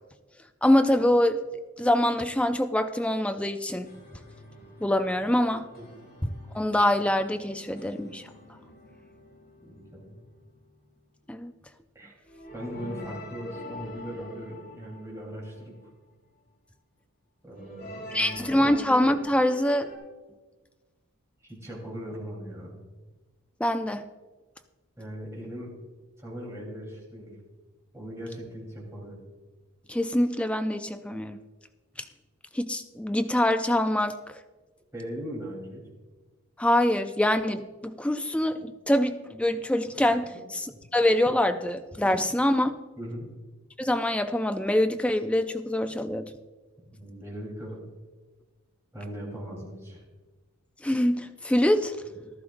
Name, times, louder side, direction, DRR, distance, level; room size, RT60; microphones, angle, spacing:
voice 1, 0.6-1.4 1.8-3.9 4.8-5.7 6.2-6.3 6.5-8.2 11.3-11.5 18.1-19.9 23.6-24.1 29.9-31.4 32.5-34.2 36.6-40.7 40.9-42.8 43.8-46.3 50.8-52.0, left 1 dB, 5° left, 8 dB, 0.3 m, -24 dB
sound 1, 3.8-10.9 12.2-15.9 17.5-20.0, left 1 dB, 45° left, 4.3 m, -46 dB
voice 2, 9.7-10.2 12.0-12.1 12.5-15.8 17.4-18.4 21.4-22.8 25.0-25.7 26.2-27.3 27.9-29.2 34.9-35.8 40.7-40.8 43.0-43.3 46.9-47.8 48.9-50.0, equal, 15° right, -4 dB, 3.5 m, -39 dB
14.5 x 12.5 x 2.5 m, 1.3 s
head